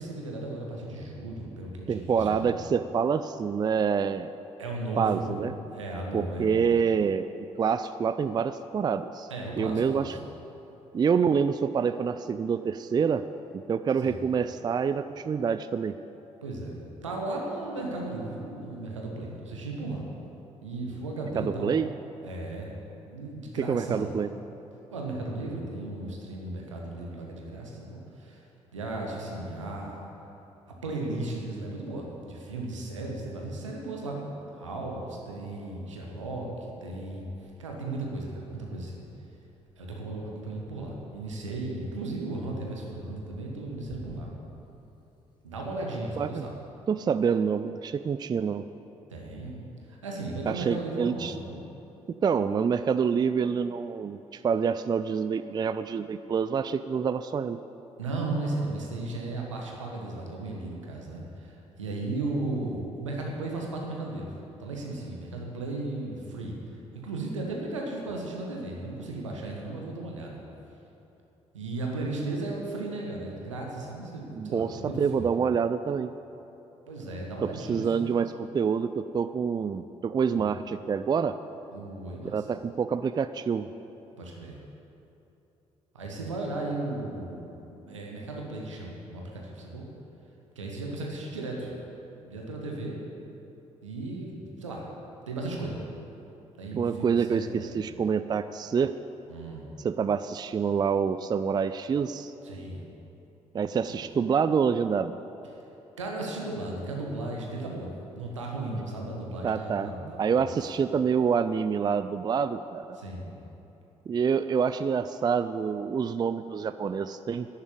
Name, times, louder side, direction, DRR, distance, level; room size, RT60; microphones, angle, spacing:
voice 1, 0.0-2.5 4.6-6.7 9.3-10.2 14.0-14.1 16.4-20.0 20.6-21.7 22.2-22.7 23.1-24.1 24.9-28.4 28.7-30.1 30.8-34.2 34.5-37.3 37.6-39.0 39.8-44.3 45.4-46.5 49.1-49.6 49.9-51.6 58.0-64.3 64.6-66.8 67.0-70.4 71.5-75.4 76.9-78.1 80.3-80.4 81.7-82.5 84.2-84.6 85.9-89.9 90.5-91.7 92.2-93.0 93.8-94.9 95.3-95.8 96.6-97.9 99.3-99.7 102.4-102.8 103.9-104.0 106.0-110.6 112.9-113.3, right 2 dB, 80° right, -1 dB, 1.5 m, -35 dB
voice 2, 1.9-4.3 5.0-5.5 6.1-9.3 9.6-10.2 10.9-13.2 13.5-16.0 21.4-21.9 23.7-24.3 46.2-46.5 46.9-48.6 50.5-51.3 52.2-57.6 74.4-76.1 77.4-81.4 82.2-83.7 96.7-98.9 99.8-102.3 103.5-105.2 109.4-113.0 114.1-117.5, right 6 dB, 25° right, 12 dB, 0.4 m, -27 dB
sound 1, 36.3-36.4 37.1-38.9 39.4-41.7 42.3-45.1, left 1 dB, 30° left, 2.5 m, -52 dB
11.0 x 7.3 x 8.4 m, 3.0 s
figure-of-eight pair, 45°, 16 cm